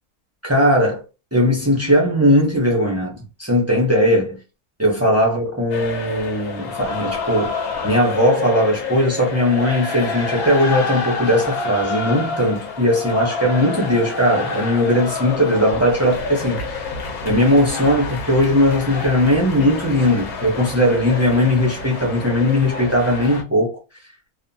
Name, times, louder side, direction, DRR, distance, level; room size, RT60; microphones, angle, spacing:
voice 1, 0.4-1.0 1.3-4.4 4.8-16.6 17.2-23.8, left 1 dB, 20° right, 0.4 m, -18 dB
sound 1, 5.7-23.4, left 4 dB, 70° left, 1.1 m, -28 dB
2.8 x 2.1 x 2.6 m
omnidirectional pair, 1.6 m